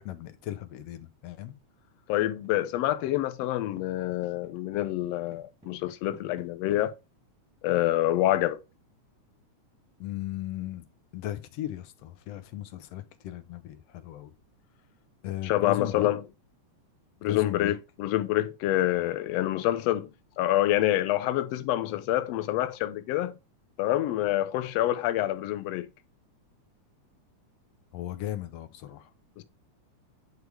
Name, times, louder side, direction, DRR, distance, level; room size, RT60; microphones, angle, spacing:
voice 1, 0.0-1.5 10.0-10.8 11.1-14.3 15.2-16.1 17.2-17.7 18.9-19.1 27.9-29.1, left 13 dB, 70° left, 1.6 m, -36 dB
voice 2, 2.1-7.0 7.6-8.6 15.4-16.2 17.2-20.1 20.4-23.3 23.8-25.9 29.4-29.5, left 14 dB, 85° left, 1.4 m, -27 dB
sound 1, 2.4-3.2 3.4-3.8 4.1-6.8, right 1 dB, 5° right, 1.3 m, -51 dB
9.4 x 3.5 x 4.8 m
omnidirectional pair, 3.5 m